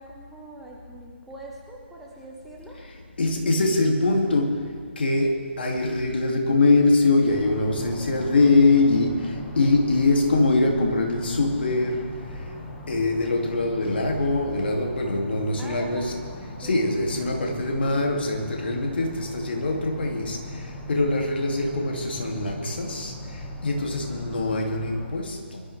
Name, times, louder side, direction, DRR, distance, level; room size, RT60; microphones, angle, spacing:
voice 1, 0.0-2.8 7.7-8.3 15.6-16.1 16.6-16.8 17.7-18.0, right 2 dB, ahead, -4 dB, 1.5 m, -43 dB
voice 2, 3.2-12.5 12.9-16.2 16.6-25.6, left 2 dB, 55° left, 1 dB, 2.6 m, -23 dB
sound 1, 7.3-25.1, equal, 15° left, 1.7 m, -40 dB
24.5 x 13.0 x 3.4 m, 2.2 s
figure-of-eight pair, 145°, 7 cm